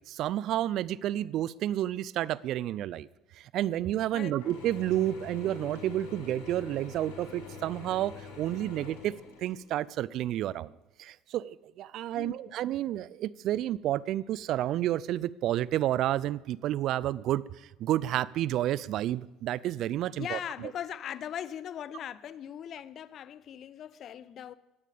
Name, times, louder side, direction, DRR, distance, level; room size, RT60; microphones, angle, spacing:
voice 1, 0.1-3.1 3.4-9.1 9.4-10.7 11.0-17.4 17.8-20.7, right 13 dB, 60° right, 0.5 m, -30 dB
Mechanisms / Drill, 4.4-9.9, left 6 dB, 80° left, 4.0 m, -45 dB
voice 2, 12.1-12.5 20.2-24.5, left 9 dB, 50° left, 0.8 m, -39 dB
20.5 x 15.5 x 3.5 m
hypercardioid pair, 60°, 0 cm